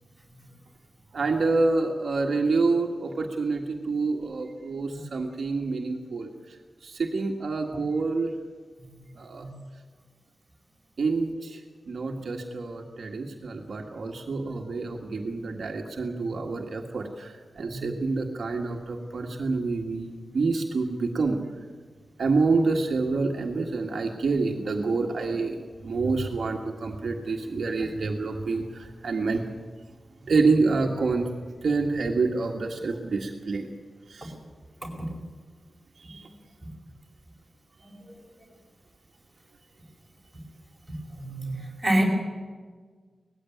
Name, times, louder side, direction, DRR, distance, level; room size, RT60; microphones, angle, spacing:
voice 1, 1.1-6.3 6.8-8.3 9.2-9.5 11.0-11.6 11.9-21.4 22.2-29.4 30.3-31.3 31.6-33.7 34.1-34.3 36.0-36.3, right 3 dB, 55° right, 1 dB, 1.7 m, -27 dB
voice 2, 41.1-42.0, right 1 dB, 5° right, -1 dB, 4.8 m, -26 dB
19.0 x 15.0 x 9.2 m, 1.5 s
wide cardioid pair, 180°, 0 cm